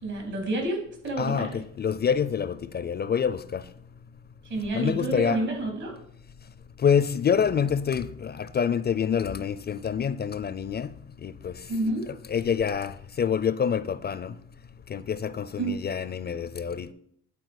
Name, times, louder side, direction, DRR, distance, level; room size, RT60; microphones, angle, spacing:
voice 1, 0.0-1.6 4.4-5.9 11.7-12.1 15.6-15.7, right 2 dB, 70° right, 3.6 m, -29 dB
voice 2, 1.2-3.6 4.7-5.4 6.8-10.9 11.2-11.5 12.3-14.3 14.9-16.9, left 7 dB, 35° left, 0.4 m, -26 dB
9.9 x 4.4 x 6.4 m
cardioid pair, 90°, 30 cm